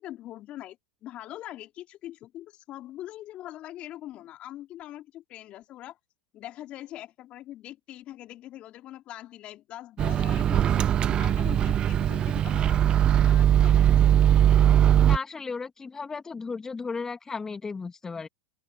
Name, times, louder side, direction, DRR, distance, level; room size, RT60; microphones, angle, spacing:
voice 1, 0.0-6.0 6.3-14.2, left 14 dB, 40° left, 3.1 m, -43 dB
Microwave oven, 10.0-15.2, right 10 dB, 30° right, 0.3 m, -20 dB
voice 2, 15.1-18.3, left 4 dB, 15° left, 2.5 m, -35 dB
open air
hypercardioid pair, 95°, 3 cm